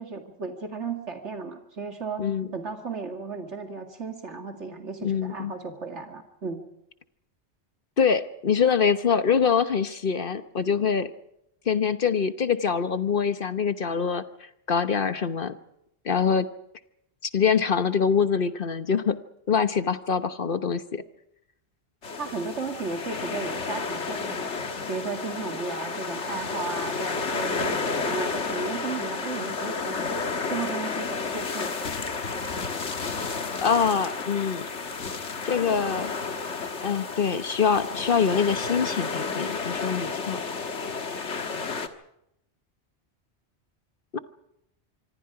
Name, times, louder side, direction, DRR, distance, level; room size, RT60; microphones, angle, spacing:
voice 1, 0.0-2.2 2.5-6.6 22.2-30.0 30.5-31.7, right 4 dB, 85° right, 4 dB, 2.6 m, -35 dB
voice 2, 5.0-5.5 8.0-11.1 11.7-14.2 14.7-15.6 16.0-16.5 17.3-19.2 19.5-21.0 33.6-34.7 35.4-36.1 36.8-40.4 44.1-44.2, left 6 dB, 55° left, 11 dB, 1.2 m, -24 dB
sound 1, 22.0-41.9, left 4 dB, 85° left, 1.9 m, -31 dB
26.0 x 24.5 x 4.9 m, 0.81 s
omnidirectional pair, 1.2 m